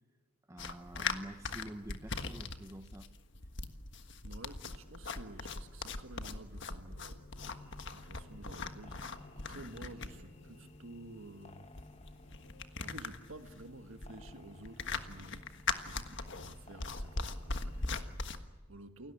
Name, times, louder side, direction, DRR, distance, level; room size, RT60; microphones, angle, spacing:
voice 1, 0.5-3.1, right 1 dB, 15° right, 0.9 m, -47 dB
sound 1, 0.6-18.4, left 4 dB, 55° left, 1.5 m, -40 dB
voice 2, 4.2-7.5 7.9-11.7 12.8-15.5 15.8-19.1, right 2 dB, 65° right, 1.7 m, -52 dB
sound 2, 4.8-13.6, left 2 dB, 90° left, 2.8 m, -61 dB
sound 3, 7.4-18.2, left 2 dB, 30° left, 1.3 m, -57 dB
29.0 x 18.0 x 8.6 m
head